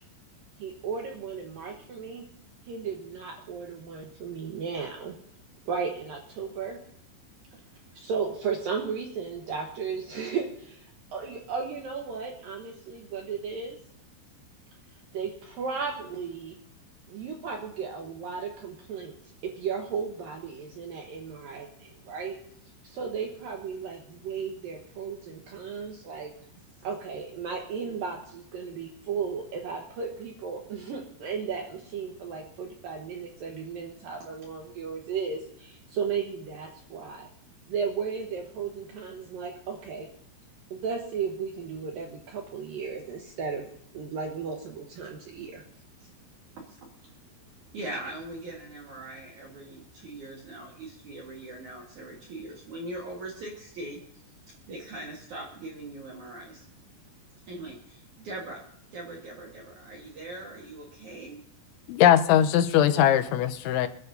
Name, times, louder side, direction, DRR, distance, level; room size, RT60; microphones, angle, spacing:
voice 1, 0.6-2.3 2.7-5.2 5.7-6.8 7.9-13.8 15.1-16.6 17.1-19.1 19.4-22.4 22.8-26.3 26.8-37.3 37.7-40.1 40.7-43.7 43.9-45.6 46.0-46.1, right 6 dB, 75° right, 2 dB, 2.1 m, -35 dB
voice 2, 47.7-54.0 54.7-56.6 57.5-58.6 58.9-61.4, right 2 dB, 60° right, -1 dB, 2.1 m, -41 dB
voice 3, 61.9-63.9, left 11 dB, 80° left, 8 dB, 3.0 m, -20 dB
26.5 x 11.0 x 2.7 m, 0.70 s
omnidirectional pair, 5.7 m